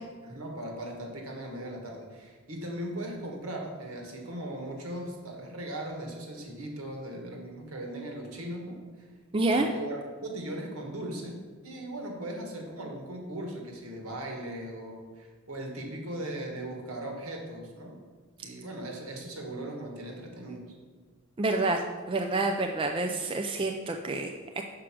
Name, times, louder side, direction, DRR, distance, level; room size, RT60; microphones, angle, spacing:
voice 1, 0.2-9.1 9.5-18.0 18.4-20.7, right 1 dB, 70° right, 2 dB, 1.4 m, -38 dB
voice 2, 9.3-9.7 21.4-21.8 22.1-24.3, right 2 dB, 25° right, 4 dB, 0.3 m, -27 dB
6.0 x 4.8 x 6.0 m, 1.5 s
head